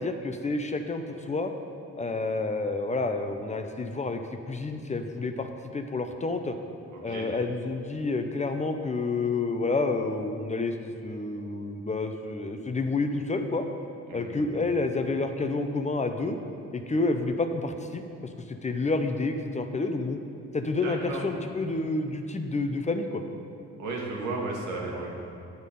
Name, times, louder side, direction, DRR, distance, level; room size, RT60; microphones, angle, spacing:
voice 1, 0.0-1.5 2.0-4.2 4.5-6.6 7.0-13.6 14.1-16.4 16.7-18.0 18.5-20.2 20.5-23.2, left 3 dB, 25° left, 6 dB, 0.6 m, -29 dB
voice 2, 6.9-7.3 14.1-14.4 20.8-21.3 23.8-25.1, right 2 dB, 85° right, -2 dB, 1.7 m, -34 dB
9.5 x 6.4 x 5.3 m, 2.6 s
cardioid pair, 90°, 30 cm